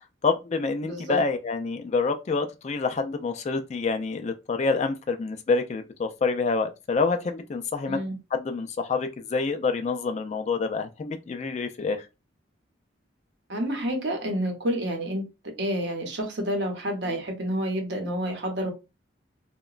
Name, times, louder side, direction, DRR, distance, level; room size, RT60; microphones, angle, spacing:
voice 1, 0.2-8.0 8.3-12.1, left 4 dB, 35° left, 0.3 m, -27 dB
voice 2, 0.8-1.2 7.9-8.2 13.5-18.7, equal, 65° right, 0.7 m, -29 dB
2.9 x 2.1 x 2.3 m
head